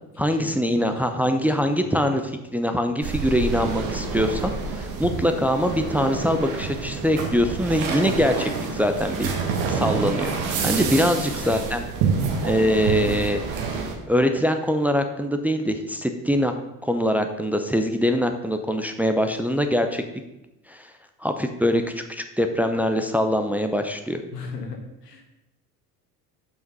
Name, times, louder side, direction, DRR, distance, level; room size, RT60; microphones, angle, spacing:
voice 1, 0.2-9.3 9.7-11.8 12.4-13.4 14.1-16.5 16.8-20.0 20.7-20.9 21.2-21.8 22.1-24.2, equal, 5° right, 6 dB, 0.7 m, -23 dB
voice 2, 0.9-1.9 11.4-11.6 24.3-25.2, left 4 dB, 85° left, 2 dB, 1.6 m, -37 dB
sound 1, 3.0-13.9, right 5 dB, 60° right, 1.6 m, -27 dB
7.3 x 6.0 x 5.4 m, 0.94 s
figure-of-eight pair, 65°, 47 cm